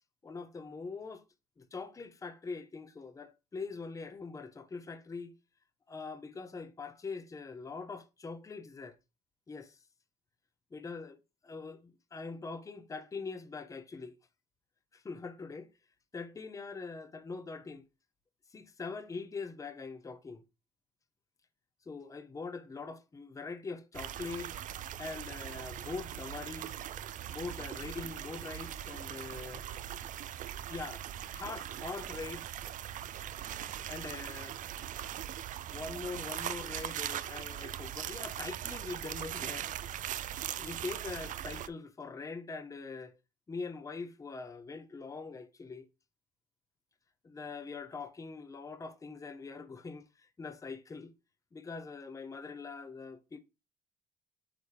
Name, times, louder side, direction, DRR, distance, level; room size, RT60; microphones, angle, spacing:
voice 1, 0.2-1.2 1.6-5.3 5.9-9.0 9.5-9.8 10.7-11.2 11.4-14.1 14.9-15.7 16.1-17.9 18.5-20.4 21.9-24.6 25.0-26.8 27.3-29.7 30.7-31.0 31.3-32.5 33.9-34.6 35.7-39.7 40.3-43.1 43.5-45.9 47.2-51.1 51.5-53.4, left 4 dB, 20° left, 0.7 m, -43 dB
sound 1, 23.9-41.7, right 11 dB, 50° right, 0.4 m, -40 dB
8.4 x 3.5 x 3.3 m
cardioid pair, 110°, 17 cm